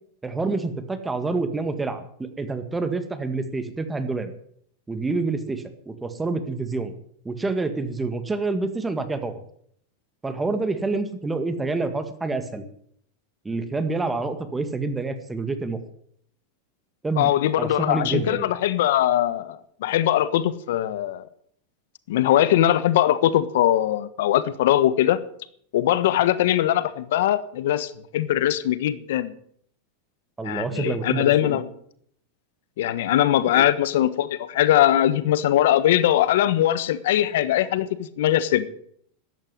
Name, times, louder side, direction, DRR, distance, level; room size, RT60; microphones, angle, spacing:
voice 1, 0.2-4.3 4.9-6.9 7.3-9.4 10.2-12.6 13.5-15.8 17.0-17.3 17.6-18.5 30.4-31.6 33.5-33.6, right 3 dB, 10° right, 9 dB, 1.9 m, -27 dB
voice 2, 17.2-21.2 22.1-25.2 25.7-29.3 30.4-31.7 32.8-38.7, left 12 dB, 75° left, 15 dB, 1.2 m, -21 dB
13.5 x 8.9 x 9.7 m, 0.66 s
supercardioid pair, 120°, 0 cm